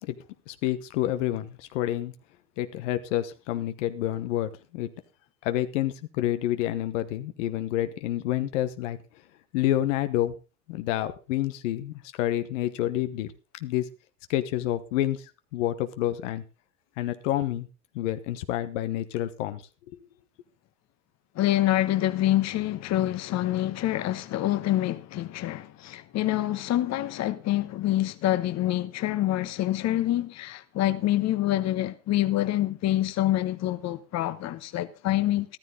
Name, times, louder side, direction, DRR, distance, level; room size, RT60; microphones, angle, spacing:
voice 1, 0.5-2.1 2.6-4.9 5.4-9.0 9.5-10.4 10.7-13.3 13.6-13.8 14.3-15.2 15.5-16.4 17.0-17.7 17.9-19.6, left 13 dB, 80° left, 1.2 m, -28 dB
voice 2, 21.3-35.6, left 14 dB, 45° left, 1.1 m, -26 dB
13.5 x 12.5 x 3.8 m
supercardioid pair, 105°, 36 cm